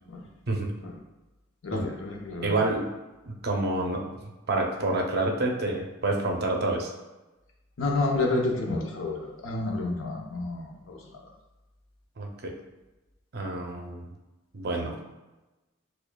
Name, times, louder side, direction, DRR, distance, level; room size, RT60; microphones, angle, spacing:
voice 1, 1.6-2.5 7.8-11.0, left 2 dB, 65° left, 0 dB, 0.7 m, -29 dB
voice 2, 2.4-2.9 3.2-4.0 4.5-6.9 12.2-12.5 13.3-14.1 14.5-14.9, right 2 dB, 50° right, 1 dB, 0.5 m, -28 dB
6.7 x 2.3 x 2.2 m, 1.1 s
head